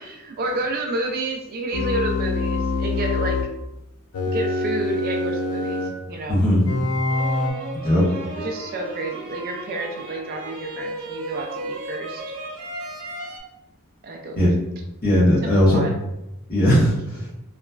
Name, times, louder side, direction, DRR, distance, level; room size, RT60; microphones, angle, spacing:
voice 1, 0.0-3.4 4.3-6.4 8.4-12.2 14.0-14.4 15.4-15.9, right 2 dB, 45° right, 2 dB, 0.3 m, -30 dB
sound 1, 1.7-3.5 4.1-6.0 6.7-7.5, left 2 dB, 85° left, 0.5 m, -24 dB
voice 2, 6.3-6.6 7.8-8.0 14.3-14.5 15.0-15.8 16.5-17.3, equal, 45° left, -8 dB, 1.2 m, -18 dB
sound 2, 7.1-13.4, right 1 dB, 80° right, 0.7 m, -35 dB
2.9 x 2.4 x 2.3 m, 0.89 s
head